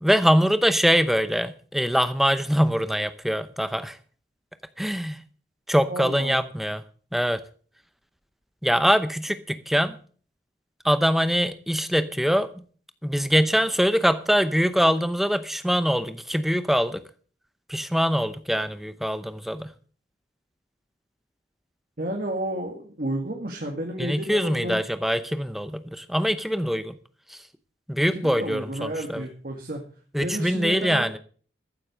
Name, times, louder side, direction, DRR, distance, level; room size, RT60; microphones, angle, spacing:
voice 1, 0.0-4.0 4.8-5.2 5.7-6.8 7.1-7.4 8.6-9.9 10.8-12.5 13.0-17.0 17.7-19.7 24.0-27.0 27.3-27.4 27.9-29.2 30.1-31.2, equal, ahead, 12 dB, 0.7 m, -23 dB
voice 2, 5.9-6.5 22.0-24.8 28.1-29.8 30.2-31.1, right 1 dB, 50° right, 2 dB, 1.9 m, -31 dB
14.5 x 7.8 x 6.3 m, 0.43 s
head